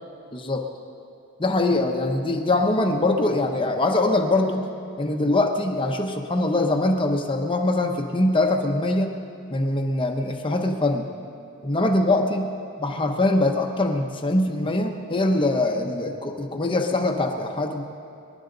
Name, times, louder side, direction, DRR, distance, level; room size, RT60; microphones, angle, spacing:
voice 1, 0.3-0.6 1.4-4.7 5.0-9.1 9.5-11.1 11.6-17.8, left 2 dB, 25° left, 3 dB, 0.9 m, -23 dB
26.0 x 11.5 x 3.9 m, 2.5 s
head